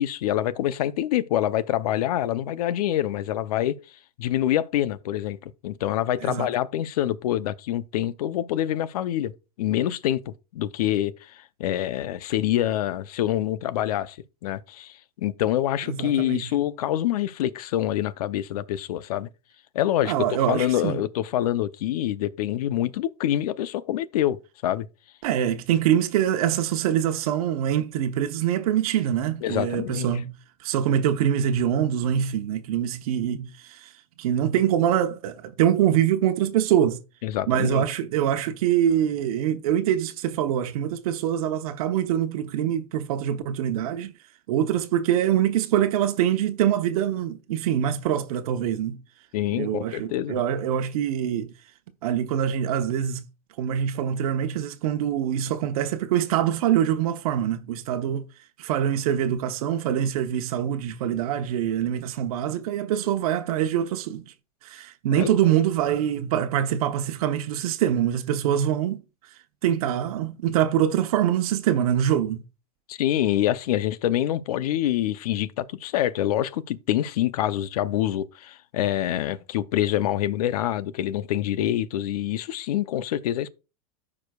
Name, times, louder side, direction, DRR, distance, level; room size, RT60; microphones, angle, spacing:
voice 1, 0.0-3.8 4.2-9.3 9.6-14.2 14.4-19.3 19.7-24.4 24.6-24.9 29.4-30.1 37.2-37.9 49.3-50.4 65.2-65.3 72.9-83.5, left 12 dB, 80° left, 0.6 m, -26 dB
voice 2, 15.9-16.5 20.0-21.0 25.2-33.9 34.2-37.0 37.5-44.1 44.5-49.0 49.6-51.5 52.0-53.3 53.6-58.3 58.6-64.3 64.6-69.0 69.6-72.4, right 10 dB, 70° right, 0.9 m, -24 dB
14.0 x 4.9 x 2.3 m
supercardioid pair, 140°, 19 cm